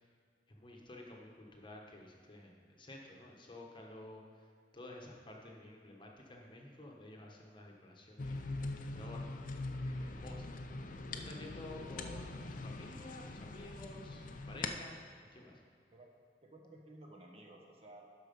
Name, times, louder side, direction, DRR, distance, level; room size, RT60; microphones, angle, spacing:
voice 1, 0.6-4.5 4.7-8.5 8.9-9.4 9.8-15.0 15.3-15.6, left 1 dB, 30° left, 0 dB, 1.1 m, -52 dB
sound 1, 8.2-14.7, left 2 dB, 50° left, 0.6 m, -42 dB
voice 2, 16.4-18.0, right 1 dB, 35° right, 0 dB, 1.1 m, -55 dB
12.0 x 4.7 x 5.2 m, 2.1 s
head